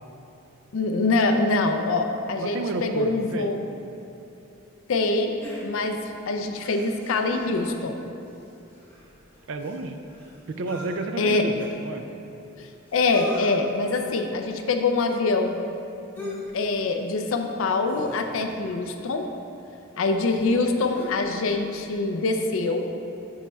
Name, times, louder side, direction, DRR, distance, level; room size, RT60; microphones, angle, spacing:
voice 1, 0.7-3.6 4.9-8.0 11.2-11.5 12.6-15.6 16.2-19.3 20.0-22.9, left 3 dB, 70° left, 5 dB, 0.4 m, -24 dB
voice 2, 2.4-3.5 9.5-10.0 10.5-12.1, right 2 dB, 60° right, 7 dB, 0.4 m, -31 dB
sound 1, 5.4-6.1 6.6-8.0 8.3-8.4 8.7-10.9 11.6-11.7 12.6-12.7 12.9-13.5 14.1-14.3 16.2-16.5 16.8-17.0 17.8-18.5 19.6-19.7 20.3-21.3 21.6-21.7, equal, 10° left, 0.8 m, -40 dB
11.0 x 4.2 x 2.3 m, 2.8 s
head